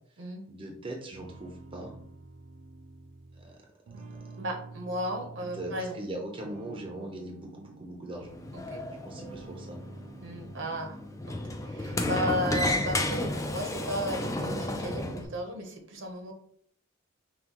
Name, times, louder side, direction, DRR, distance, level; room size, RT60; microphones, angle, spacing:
voice 1, 0.1-2.0 3.3-3.6 5.2-5.3 5.5-8.4 9.0-9.8, right 1 dB, 25° right, 0 dB, 0.6 m, -40 dB
sound 1, 1.1-6.0 6.4-8.7 9.1-11.3 11.7-14.2 14.5-15.4, right 3 dB, 90° right, 0.6 m, -48 dB
voice 2, 4.4-5.9 8.5-8.8 10.2-11.0 11.3-16.3, equal, 65° right, 3 dB, 0.8 m, -34 dB
Sliding door, 8.2-15.3, left 1 dB, 15° left, 0.3 m, -32 dB
5.7 x 2.3 x 2.9 m, 0.63 s
head